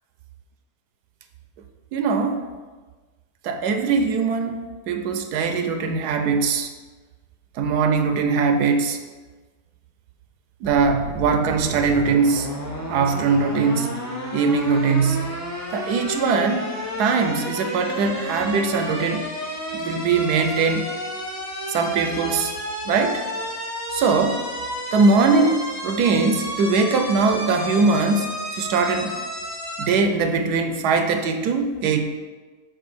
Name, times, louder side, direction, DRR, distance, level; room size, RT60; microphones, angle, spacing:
voice 1, 1.9-2.4 3.4-4.6 4.9-6.7 7.6-9.0 10.6-12.5 12.9-13.9 14.3-15.3 15.7-16.7 17.0-19.3 19.7-20.8 21.7-22.5 22.9-23.2 23.9-24.4 24.9-29.1 29.8-32.0, right 4 dB, 85° right, 7 dB, 1.1 m, -21 dB
sound 1, 10.6-29.9, equal, 25° left, 0.4 m, -32 dB
6.8 x 2.7 x 5.7 m, 1.3 s
omnidirectional pair, 1.7 m